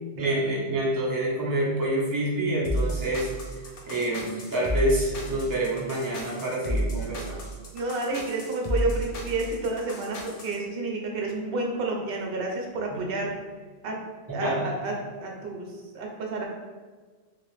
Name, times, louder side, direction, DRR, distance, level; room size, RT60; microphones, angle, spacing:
voice 1, 0.2-3.3 3.9-7.5 12.9-13.0 14.3-14.7, right 1 dB, 20° right, -5 dB, 0.7 m, -27 dB
sound 1, 2.6-10.6, equal, 50° left, 0.5 m, -32 dB
voice 2, 7.7-13.3 13.8-14.0 14.3-14.9 15.2-15.7 15.9-16.4, right 2 dB, 60° right, 0 dB, 0.9 m, -30 dB
3.0 x 2.9 x 3.1 m, 1.4 s
omnidirectional pair, 1.2 m